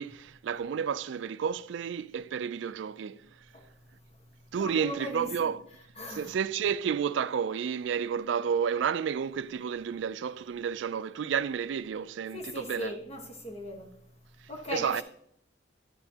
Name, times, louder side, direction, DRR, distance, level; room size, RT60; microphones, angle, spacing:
voice 1, 0.0-3.2 4.5-5.6 6.1-13.0 14.7-15.0, right 7 dB, 75° right, 0.3 m, -31 dB
voice 2, 4.5-5.5 6.0-6.3 12.3-13.9 14.5-15.0, equal, 30° left, 1.3 m, -38 dB
9.9 x 9.8 x 2.8 m
head